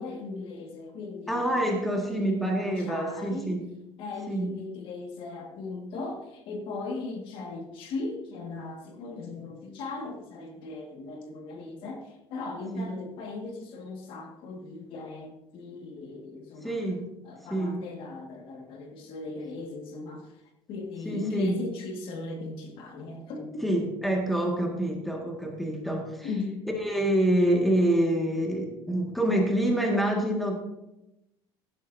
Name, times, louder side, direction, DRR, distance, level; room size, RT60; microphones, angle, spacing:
voice 1, 0.0-1.4 1.8-3.6 4.0-16.8 17.2-20.4 20.7-23.6 26.2-26.6, left 3 dB, 55° left, 3 dB, 1.8 m, -38 dB
voice 2, 1.3-3.6 4.3-4.5 12.7-12.9 16.6-17.1 17.5-17.8 21.0-21.5 23.6-26.3 26.8-30.6, right 1 dB, ahead, 0 dB, 1.8 m, -26 dB
16.0 x 12.0 x 2.7 m, 0.91 s
cardioid pair, 160°, 11 cm